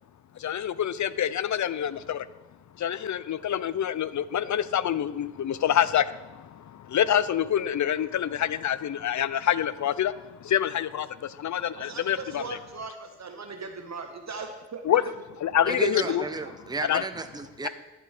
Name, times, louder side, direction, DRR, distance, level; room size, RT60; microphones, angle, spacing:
voice 1, 0.4-2.3 2.8-12.4 14.9-15.0 15.4-16.2 16.9-17.0, left 10 dB, 75° left, 17 dB, 0.5 m, -26 dB
voice 2, 11.7-14.8 16.0-16.2, right 4 dB, 65° right, 5 dB, 0.9 m, -39 dB
voice 3, 15.7-17.7, right 3 dB, 15° right, 9 dB, 0.7 m, -33 dB
11.5 x 7.5 x 4.1 m, 1.1 s
cardioid pair, 40°, 30 cm